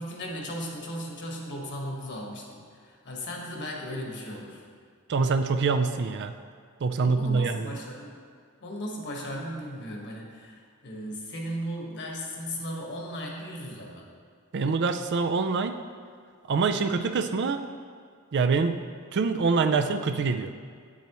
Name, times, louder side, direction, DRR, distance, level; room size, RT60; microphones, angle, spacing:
voice 1, 0.0-4.7 7.0-8.2 8.6-14.1, equal, 55° left, -1 dB, 1.5 m, -36 dB
voice 2, 5.1-6.3 6.8-7.7 14.5-15.7 16.5-17.7 18.3-18.8 19.1-20.5, right 4 dB, 55° right, 8 dB, 0.4 m, -25 dB
8.9 x 8.4 x 3.1 m, 2.1 s
head